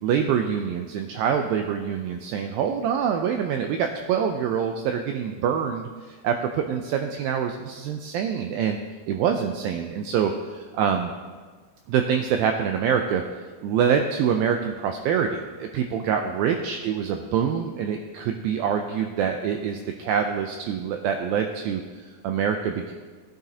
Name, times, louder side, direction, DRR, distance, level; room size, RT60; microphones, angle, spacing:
voice 1, 0.0-8.8 9.1-11.1 11.9-13.2 13.6-22.9, right 7 dB, 90° right, 5 dB, 2.0 m, -25 dB
16.0 x 8.8 x 2.8 m, 1.5 s
omnidirectional pair, 4.7 m